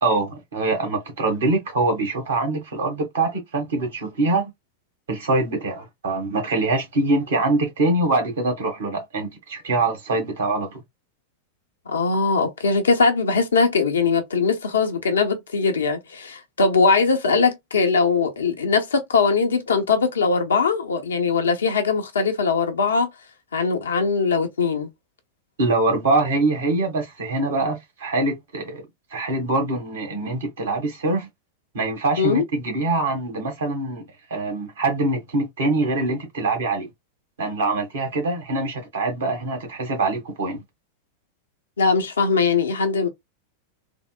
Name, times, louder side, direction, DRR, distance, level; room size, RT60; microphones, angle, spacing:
voice 1, 0.0-4.5 5.1-10.8 25.6-28.8 29.1-31.3 31.7-34.0 34.3-36.9 37.4-40.6, right 2 dB, 65° right, 1.3 m, -24 dB
voice 2, 11.9-23.1 23.5-24.9 32.2-32.4 41.8-43.1, left 4 dB, 70° left, 0.7 m, -21 dB
3.6 x 2.0 x 2.2 m
figure-of-eight pair, 90°, 0 cm